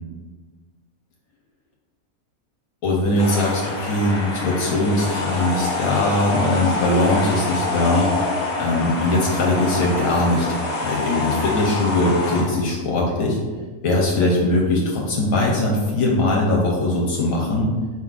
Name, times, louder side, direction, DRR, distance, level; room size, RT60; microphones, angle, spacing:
voice 1, 2.8-8.1 8.6-10.5 10.8-13.4 13.8-17.7, left 2 dB, 70° left, -2 dB, 1.0 m, -20 dB
sound 1, 3.2-12.4, left 2 dB, 50° left, 0.9 m, -26 dB
4.5 x 3.7 x 2.4 m, 1.4 s
omnidirectional pair, 1.5 m